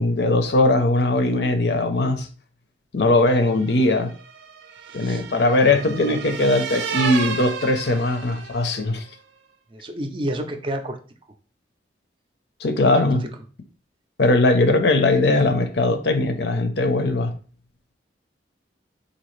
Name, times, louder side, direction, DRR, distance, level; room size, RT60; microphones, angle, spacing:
voice 1, 0.0-2.3 2.9-4.1 4.9-9.0 12.6-13.2 14.2-17.3, left 2 dB, 70° left, 0.6 m, -20 dB
sound 1, 3.5-8.9, right 6 dB, 85° right, 0.5 m, -32 dB
voice 2, 4.9-5.2 5.7-5.8 9.7-11.0 13.2-13.3, right 1 dB, 30° right, 0.4 m, -30 dB
4.1 x 2.7 x 3.1 m
head